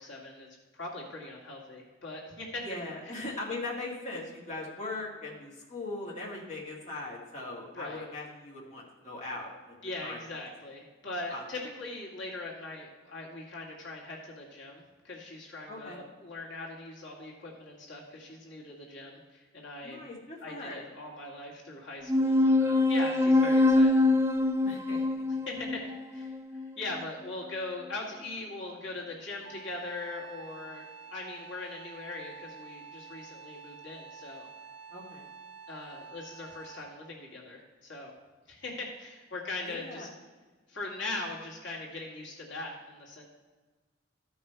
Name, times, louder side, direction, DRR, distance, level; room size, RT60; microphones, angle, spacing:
voice 1, 0.0-2.6 3.0-3.2 7.7-8.0 9.8-20.0 20.4-24.0 25.5-34.5 35.7-38.1 38.5-40.1 40.7-43.2, left 2 dB, 70° left, -3 dB, 2.0 m, -41 dB
voice 2, 2.6-10.2 11.3-11.4 15.7-16.0 19.8-20.8 24.6-25.0 34.9-35.3 39.6-40.1, left 2 dB, 40° left, -4 dB, 1.9 m, -40 dB
sound 1, 22.1-27.0, left 2 dB, 15° right, 0.5 m, -24 dB
Wind instrument woodwind instrument, 29.4-37.1, right 6 dB, 55° right, 2.2 m, -48 dB
14.0 x 5.4 x 4.5 m, 1.3 s
head